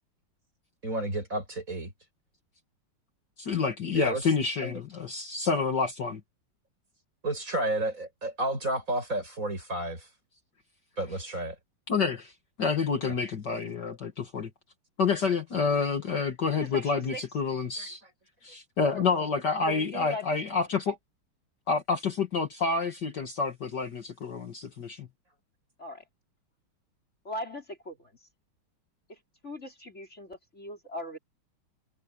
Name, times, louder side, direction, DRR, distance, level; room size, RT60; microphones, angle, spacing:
voice 1, 0.8-1.9 3.9-4.2 4.6-4.8 7.2-10.1 11.0-11.6 13.1-13.2 17.8-17.9, right 1 dB, 35° right, 7.9 m, -31 dB
voice 2, 3.4-6.2 11.9-12.3 12.6-14.5 15.0-18.0 18.4-21.0 21.7-25.1, left 5 dB, 55° left, 2.2 m, -28 dB
voice 3, 16.5-17.2 18.9-19.0 19.6-20.2 25.8-26.0 27.2-28.1 29.1-29.2 29.4-31.2, left 1 dB, 30° left, 4.9 m, -39 dB
omnidirectional pair, 2.4 m